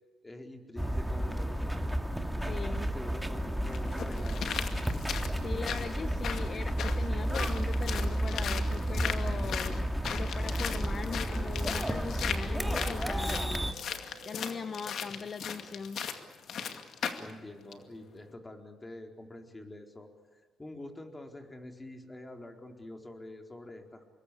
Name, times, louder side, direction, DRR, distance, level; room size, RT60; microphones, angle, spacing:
voice 1, 0.2-2.0 2.5-4.5 17.2-24.0, left 1 dB, 20° left, 4 dB, 4.3 m, -46 dB
sound 1, 0.8-13.7, right 1 dB, 5° right, 2.4 m, -32 dB
voice 2, 2.4-2.9 5.4-13.8 14.3-16.0, left 5 dB, 45° left, 11 dB, 1.0 m, -40 dB
sound 2, 2.9-3.0 3.7-17.3 17.7-17.8, left 7 dB, 65° left, 2.2 m, -38 dB
Guitar, 7.1-9.6 10.4-15.8, right 4 dB, 20° right, 6.1 m, -56 dB
26.5 x 21.5 x 8.5 m, 1.5 s
cardioid pair, 90°, 0 cm